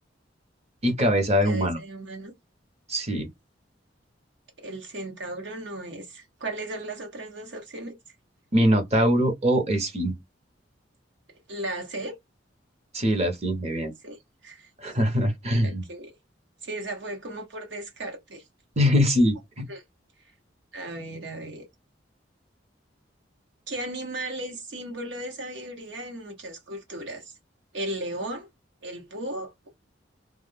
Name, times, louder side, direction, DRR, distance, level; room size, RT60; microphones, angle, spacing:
voice 1, 0.8-1.8 2.9-3.3 8.5-10.1 12.9-13.9 14.8-15.8 18.8-19.7, equal, 35° right, 0.8 m, -23 dB
voice 2, 1.4-2.3 4.6-8.0 11.5-12.2 14.0-14.2 14.4-14.7 15.6-16.1 16.6-18.4 19.7-19.8 20.7-21.7 23.7-27.3 27.7-28.5 28.8-29.7, right 1 dB, 70° right, 1.0 m, -36 dB
2.3 x 2.2 x 3.3 m
head